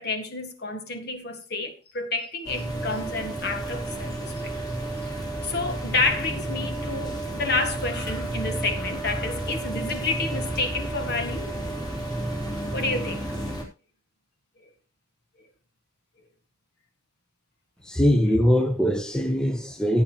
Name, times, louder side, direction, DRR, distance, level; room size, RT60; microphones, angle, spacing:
voice 1, 0.0-4.5 5.0-5.2 5.4-11.6 12.7-13.4, left 3 dB, 50° left, 1.9 m, -30 dB
sound 1, 2.4-13.6, right 1 dB, 20° left, 3.3 m, -31 dB
voice 2, 17.8-20.0, equal, 5° left, 0.8 m, -22 dB
17.0 x 8.8 x 3.0 m
head